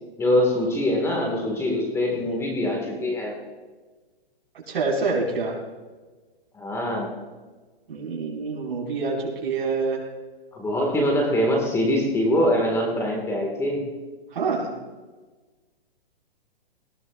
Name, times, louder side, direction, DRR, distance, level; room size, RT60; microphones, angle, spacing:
voice 1, 0.2-3.3 6.5-7.2 10.5-13.9, left 1 dB, 10° left, 1 dB, 1.8 m, -23 dB
voice 2, 4.7-5.6 7.9-10.0 14.3-14.7, right 4 dB, 70° right, -1 dB, 5.0 m, -26 dB
19.0 x 17.0 x 2.5 m, 1.3 s
hypercardioid pair, 150°, 30 cm